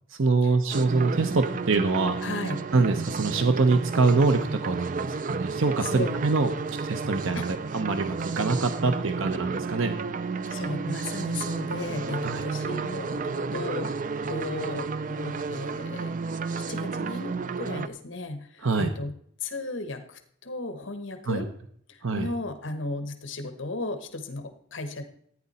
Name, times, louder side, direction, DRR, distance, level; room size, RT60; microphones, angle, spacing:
voice 1, 0.1-2.2 2.7-6.5 6.8-9.9 12.2-12.4 18.6-18.9 21.3-21.4 22.0-22.3, right 3 dB, 80° right, 8 dB, 0.8 m, -24 dB
sound 1, 0.7-17.9, right 4 dB, 40° right, 0.4 m, -32 dB
voice 2, 2.2-2.6 5.3-5.4 5.8-6.1 7.3-7.5 10.4-13.9 14.3-16.2 16.7-17.3 17.6-19.1 19.4-21.5 21.9-25.0, left 2 dB, 70° left, 7 dB, 1.2 m, -35 dB
14.0 x 9.3 x 4.2 m, 0.66 s
head